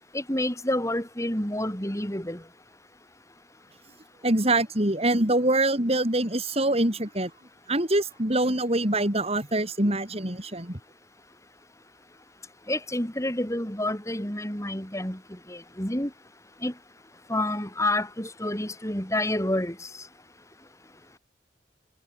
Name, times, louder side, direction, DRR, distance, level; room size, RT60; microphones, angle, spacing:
voice 1, 0.1-2.4 12.7-15.2 15.5-16.1 16.6-16.7 17.3-19.9, left 1 dB, 15° left, 7.7 m, -28 dB
voice 2, 4.2-7.3 7.7-10.8, right 1 dB, 35° right, 6.6 m, -24 dB
head